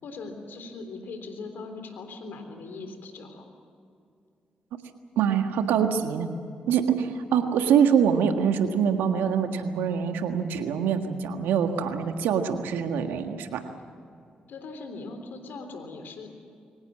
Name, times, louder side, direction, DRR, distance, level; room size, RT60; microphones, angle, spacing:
voice 1, 0.0-3.5 14.5-16.3, left 3 dB, 75° left, 6 dB, 3.6 m, -40 dB
voice 2, 5.1-6.3 6.7-13.6, right 7 dB, 85° right, 6 dB, 1.6 m, -24 dB
24.0 x 19.0 x 7.5 m, 2.5 s
hypercardioid pair, 40°, 3 cm